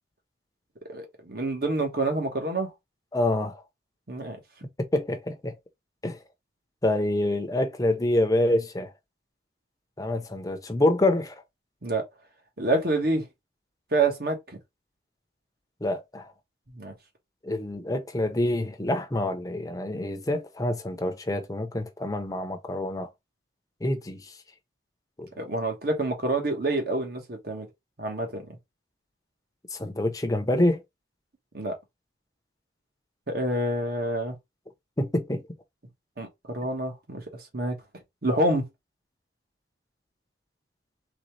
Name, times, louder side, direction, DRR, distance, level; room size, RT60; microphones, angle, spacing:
voice 1, 0.9-2.7 4.1-4.4 11.8-12.0 12.6-13.3 13.9-14.6 16.8-16.9 25.4-27.7 28.0-28.4 31.5-31.7 33.3-34.3 36.2-37.2 37.5-37.7 38.2-38.6, right 2 dB, 50° right, 1.4 m, -27 dB
voice 2, 3.1-3.6 4.8-5.5 6.0-6.2 6.8-8.9 10.0-11.3 15.8-16.3 17.4-23.1 23.8-24.2 25.2-25.3 29.7-30.8 35.0-35.4, left 1 dB, 20° left, 0.7 m, -26 dB
4.0 x 3.5 x 3.2 m
head